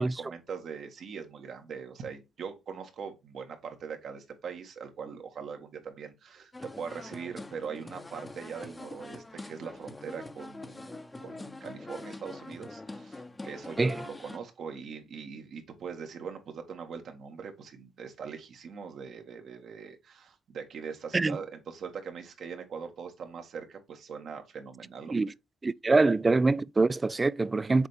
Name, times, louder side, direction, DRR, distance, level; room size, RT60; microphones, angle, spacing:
voice 1, 0.0-25.3, right 6 dB, 65° right, 1.8 m, -41 dB
sound 1, 6.5-14.4, left 2 dB, 20° left, 0.9 m, -44 dB
voice 2, 25.6-27.9, right 3 dB, 25° right, 0.4 m, -24 dB
7.1 x 4.3 x 3.4 m
cardioid pair, 90°, 0 cm